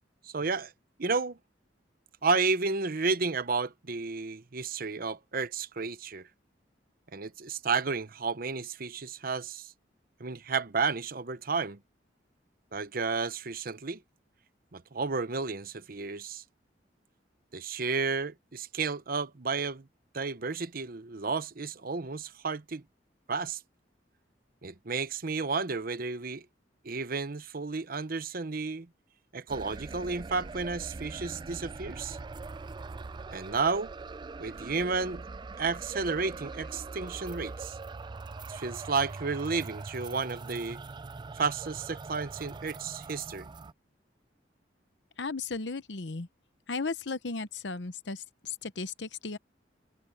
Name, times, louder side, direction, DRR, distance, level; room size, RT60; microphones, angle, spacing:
voice 1, 0.2-0.7 1.0-1.4 2.2-6.3 7.1-9.7 10.2-11.8 12.7-14.0 14.7-16.4 17.5-19.9 20.1-22.8 23.3-23.6 24.6-26.5 26.8-28.9 29.3-32.2 33.3-33.9 34.4-35.2 35.6-37.8 38.5-40.8 41.4-43.5, right 4 dB, 55° right, 0.9 m, -32 dB
sound 1, 29.5-43.7, right 3 dB, 25° right, 0.4 m, -42 dB
voice 2, 45.2-46.3 46.7-49.4, left 4 dB, 75° left, 1.0 m, -35 dB
head